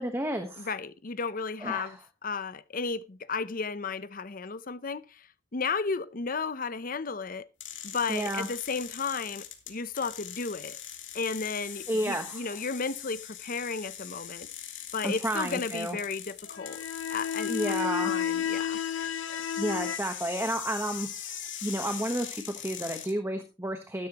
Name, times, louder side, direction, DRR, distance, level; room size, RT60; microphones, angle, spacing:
voice 1, 0.0-0.7 1.6-2.0 8.1-8.5 11.9-12.5 15.0-16.0 17.5-18.1 19.6-21.4 21.6-24.1, right 1 dB, 15° right, 1.2 m, -31 dB
voice 2, 0.6-7.5 7.8-10.8 11.1-14.5 14.9-16.8 17.1-17.8 18.0-18.8 19.3-19.4, left 4 dB, 45° left, 0.7 m, -34 dB
sound 1, 7.6-23.1, left 10 dB, 65° left, 3.2 m, -41 dB
sound 2, 16.5-20.0, left 8 dB, 85° left, 0.7 m, -31 dB
14.0 x 12.5 x 3.0 m
head